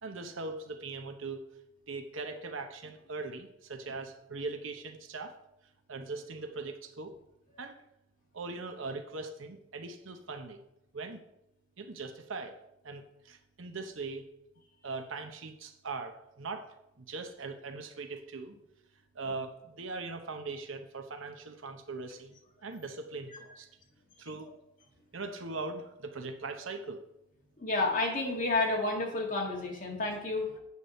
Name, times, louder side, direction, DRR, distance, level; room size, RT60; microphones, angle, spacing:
voice 1, 0.0-1.5 1.9-5.3 5.9-7.1 7.6-7.8 8.3-10.6 10.9-11.2 11.8-12.6 12.8-14.3 14.8-16.7 17.0-18.6 19.1-22.3 22.6-23.7 24.2-24.5 25.1-27.0, right 3 dB, 70° right, 6 dB, 0.9 m, -40 dB
voice 2, 27.6-30.6, left 2 dB, 40° left, -1 dB, 2.1 m, -30 dB
8.2 x 4.7 x 6.9 m, 0.84 s
head